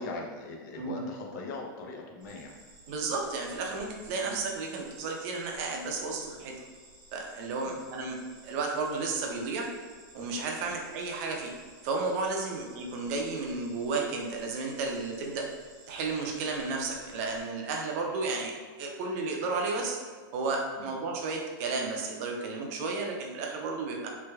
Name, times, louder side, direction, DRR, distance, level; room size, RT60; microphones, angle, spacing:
voice 1, 0.0-2.6 4.2-4.4 7.6-7.8 10.6-10.8 12.5-12.6 20.8-20.9, left 3 dB, 55° left, 1 dB, 0.5 m, -40 dB
sound 1, 2.2-17.4, right 2 dB, 65° right, 0.9 m, -55 dB
voice 2, 2.9-6.5 7.1-9.7 10.1-11.5 11.8-15.5 15.9-18.5 18.8-20.0 20.3-24.1, right 3 dB, 40° right, 1 dB, 0.5 m, -33 dB
3.3 x 3.1 x 2.3 m, 1.5 s
supercardioid pair, 160°, 12 cm